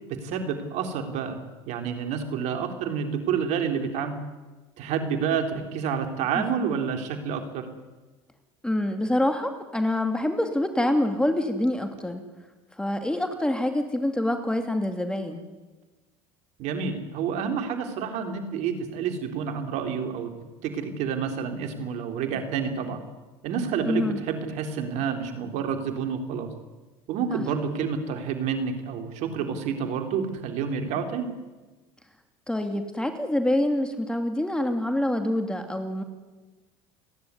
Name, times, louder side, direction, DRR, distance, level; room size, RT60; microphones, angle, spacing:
voice 1, 0.1-1.4 1.7-4.2 4.8-7.7 16.6-20.3 20.6-23.0 23.4-26.5 27.1-31.3, right 6 dB, 65° right, 6 dB, 3.6 m, -29 dB
voice 2, 6.3-6.8 8.6-12.2 12.8-15.4 23.8-24.2 27.3-27.4 32.5-36.0, left 1 dB, 5° left, 6 dB, 2.6 m, -26 dB
29.5 x 11.0 x 9.8 m, 1.2 s
supercardioid pair, 90°, 13 cm